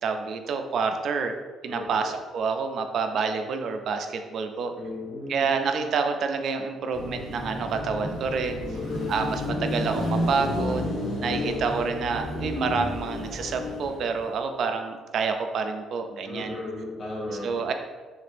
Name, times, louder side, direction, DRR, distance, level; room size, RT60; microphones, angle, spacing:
voice 1, 0.0-1.3 1.6-4.7 5.3-8.6 9.1-10.9 11.2-16.6 17.4-17.7, right 5 dB, 60° right, 6 dB, 0.3 m, -28 dB
voice 2, 1.7-2.1 4.8-5.5 8.6-9.4 16.2-17.7, left 2 dB, 40° left, -5 dB, 0.5 m, -35 dB
Car passing by / Traffic noise roadway noise / Engine, 6.9-14.3, left 1 dB, 80° left, 1.1 m, -31 dB
2.9 x 2.5 x 3.2 m, 1.4 s
cardioid pair, 105°, 0 cm